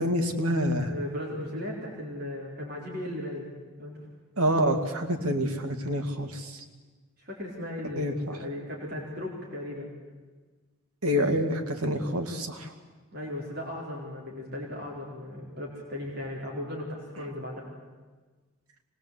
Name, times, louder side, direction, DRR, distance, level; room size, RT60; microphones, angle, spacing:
voice 1, 0.0-0.9 4.4-6.6 8.0-8.4 11.0-12.7, equal, 80° right, 5 dB, 2.3 m, -27 dB
voice 2, 0.9-3.5 3.8-4.0 7.2-9.9 13.1-17.7, left 1 dB, 45° right, -2 dB, 4.3 m, -36 dB
25.0 x 20.0 x 8.3 m, 1.3 s
head